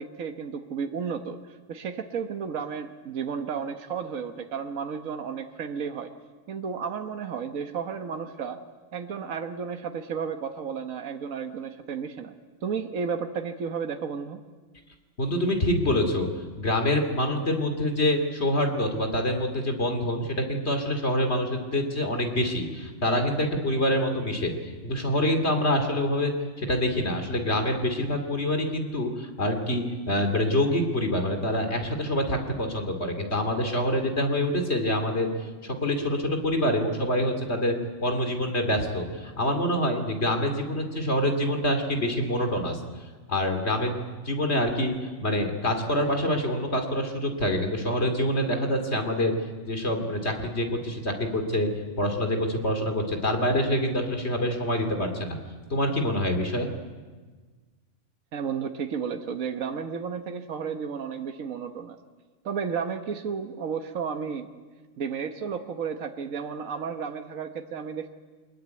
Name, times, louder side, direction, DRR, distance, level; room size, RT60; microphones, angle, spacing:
voice 1, 0.0-6.1 6.5-8.6 8.9-12.3 12.6-14.4 58.3-62.0 62.4-64.5 65.0-68.1, right 6 dB, 75° right, 6 dB, 1.5 m, -33 dB
voice 2, 15.2-16.3 16.6-24.5 24.8-26.3 26.6-37.7 38.0-42.8 43.3-44.9 45.2-49.3 49.7-51.7 52.0-55.4 55.7-56.7, left 1 dB, 50° left, 5 dB, 2.9 m, -26 dB
22.5 x 21.5 x 9.4 m, 1.4 s
omnidirectional pair, 1.4 m